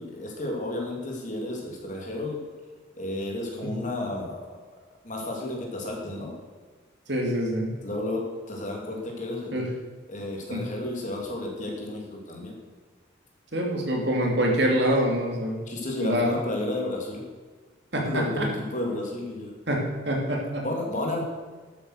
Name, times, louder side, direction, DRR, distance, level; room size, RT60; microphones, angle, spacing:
voice 1, 0.0-2.4 3.0-4.4 5.0-6.3 7.8-9.5 10.1-12.5 15.7-17.2 18.0-19.5 20.6-21.2, left 1 dB, 40° left, 0 dB, 2.9 m, -32 dB
voice 2, 7.1-7.8 9.5-9.7 10.5-10.6 13.5-15.6 16.0-16.3 17.9-18.5 19.7-20.6, equal, 55° right, 0 dB, 3.0 m, -25 dB
12.5 x 8.7 x 6.6 m, 1.4 s
head